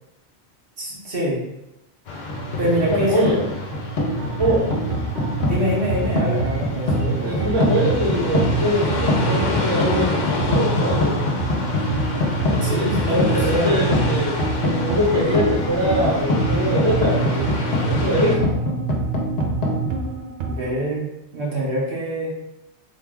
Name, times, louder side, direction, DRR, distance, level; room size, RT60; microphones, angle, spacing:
voice 1, 0.8-1.4 2.6-3.4 5.4-7.5 12.6-13.9 20.5-21.1 21.3-22.3, equal, 60° right, -5 dB, 1.0 m, -25 dB
sound 1, 2.1-18.4, left 3 dB, 50° left, 0.6 m, -29 dB
sound 2, 2.3-19.9, equal, 70° left, 1.0 m, -24 dB
voice 2, 2.6-3.4 4.4-4.7 7.1-11.1 12.5-18.4, equal, 25° right, -3 dB, 0.8 m, -23 dB
sound 3, 4.2-20.8, right 3 dB, 90° right, 0.9 m, -30 dB
3.6 x 2.2 x 3.6 m, 0.89 s
omnidirectional pair, 1.1 m